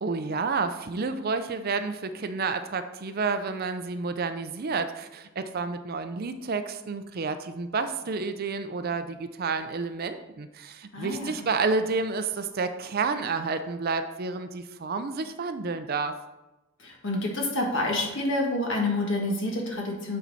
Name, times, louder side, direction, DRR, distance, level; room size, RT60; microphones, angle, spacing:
voice 1, 0.0-16.1, right 4 dB, 50° right, 9 dB, 0.5 m, -30 dB
voice 2, 10.9-11.4 16.8-20.2, left 2 dB, 60° left, -1 dB, 1.7 m, -28 dB
8.5 x 4.4 x 4.1 m, 1.0 s
head